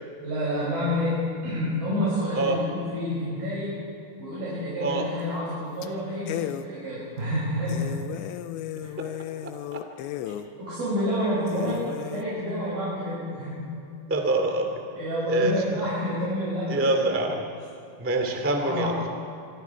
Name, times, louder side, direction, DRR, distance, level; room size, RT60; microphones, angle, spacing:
voice 1, 0.2-3.7 4.2-7.9 8.8-8.9 10.6-13.6 14.9-16.8 18.1-19.0, equal, 55° right, -9 dB, 8.0 m, -29 dB
sound 1, 5.2-5.5 5.8-5.9 6.3-6.7 7.2-7.3 7.7-10.5 11.0-11.1 11.5-12.3, left 12 dB, 90° left, 3.0 m, -35 dB
voice 2, 14.1-14.7 15.3-15.5 16.7-17.4 18.0-18.9, right 2 dB, 10° right, 3 dB, 0.8 m, -24 dB
26.0 x 24.5 x 4.8 m, 2.6 s
omnidirectional pair, 5.2 m